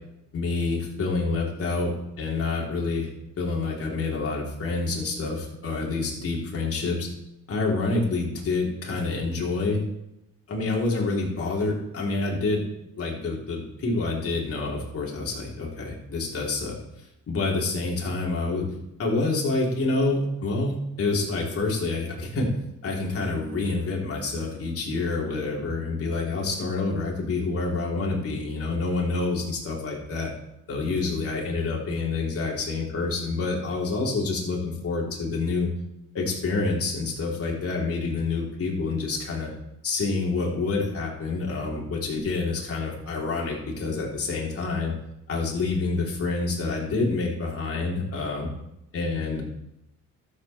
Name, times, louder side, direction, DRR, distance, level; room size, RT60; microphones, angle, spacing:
voice 1, 0.3-3.1 3.4-7.1 7.5-9.8 10.5-12.6 13.0-16.8 17.3-18.7 19.0-22.5 22.8-30.3 30.7-35.7 36.1-39.5 39.8-44.9 45.3-48.5 48.9-49.4, left 3 dB, 50° left, -2 dB, 3.4 m, -27 dB
12.5 x 7.8 x 4.3 m, 0.86 s
cardioid pair, 90°, 30 cm